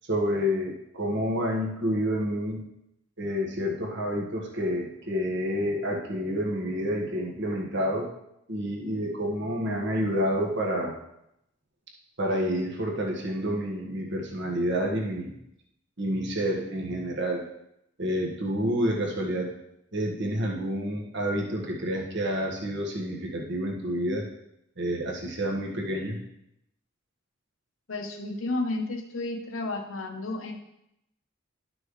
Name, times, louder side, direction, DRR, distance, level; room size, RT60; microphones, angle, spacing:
voice 1, 0.1-2.6 3.2-8.1 8.5-11.0 12.2-15.3 16.0-17.4 18.0-19.5 19.9-24.3 24.8-26.2, equal, 60° right, 0 dB, 1.6 m, -29 dB
voice 2, 27.9-30.5, left 2 dB, 80° left, 4 dB, 1.1 m, -32 dB
11.5 x 6.2 x 3.2 m, 0.81 s
head